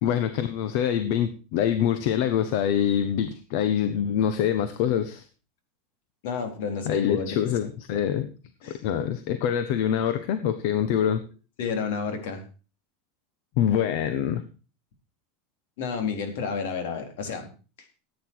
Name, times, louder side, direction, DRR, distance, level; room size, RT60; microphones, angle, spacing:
voice 1, 0.0-5.2 6.8-8.3 8.7-11.2 13.6-14.4, left 9 dB, 50° left, 10 dB, 1.2 m, -25 dB
voice 2, 6.2-7.7 8.6-8.8 11.6-12.5 15.8-17.5 17.8-17.9, left 5 dB, 70° left, 6 dB, 4.0 m, -31 dB
14.5 x 9.3 x 4.7 m, 0.35 s
supercardioid pair, 170°, 0 cm